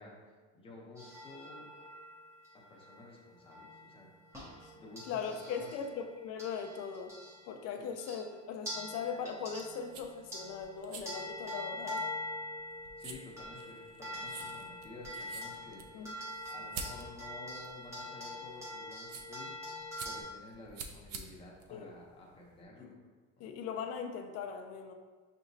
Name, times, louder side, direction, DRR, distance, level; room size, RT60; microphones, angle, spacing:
voice 1, 0.0-1.7 2.5-4.1 4.7-5.7 13.0-16.1 16.5-19.7 20.0-23.0 23.4-23.5, left 2 dB, 20° left, -3 dB, 0.7 m, -52 dB
sound 1, 1.0-7.6 8.0-8.3 8.7-20.2, left 1 dB, 10° right, 0.8 m, -44 dB
voice 2, 5.1-7.2 7.4-12.1 15.9-16.1 21.7-21.9 22.8-23.0 23.4-24.9, left 6 dB, 55° left, 5 dB, 0.5 m, -39 dB
sound 2, 9.5-22.6, right 5 dB, 50° right, 0.5 m, -49 dB
6.0 x 2.9 x 2.7 m, 1.4 s
cardioid pair, 165°, 31 cm